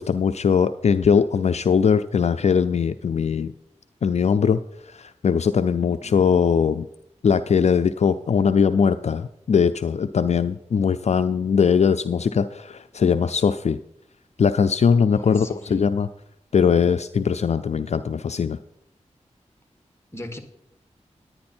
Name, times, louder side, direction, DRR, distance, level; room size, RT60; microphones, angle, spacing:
voice 1, 0.0-3.5 4.0-4.6 4.9-6.9 7.2-13.8 14.4-16.1 16.5-18.6, left 6 dB, 65° left, 12 dB, 0.4 m, -20 dB
voice 2, 15.1-15.8 20.1-20.4, left 1 dB, 20° left, 7 dB, 1.6 m, -39 dB
10.5 x 9.5 x 4.3 m, 0.78 s
cardioid pair, 55°, 12 cm